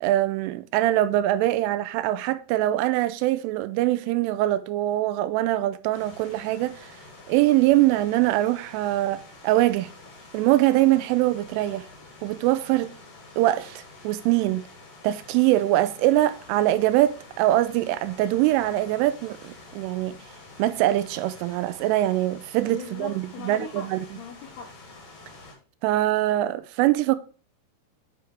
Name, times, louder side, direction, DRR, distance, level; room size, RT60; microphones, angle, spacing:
voice 1, 0.0-6.9 7.3-9.9 10.3-11.9 12.2-12.9 13.4-14.6 15.0-20.2 20.6-24.0 25.8-27.2, right 15 dB, 85° right, 3.0 m, -23 dB
sound 1, 5.9-25.5, left 3 dB, 55° left, 1.6 m, -48 dB
voice 2, 22.7-24.7, left 7 dB, 85° left, 2.3 m, -40 dB
9.3 x 3.5 x 4.6 m
omnidirectional pair, 5.7 m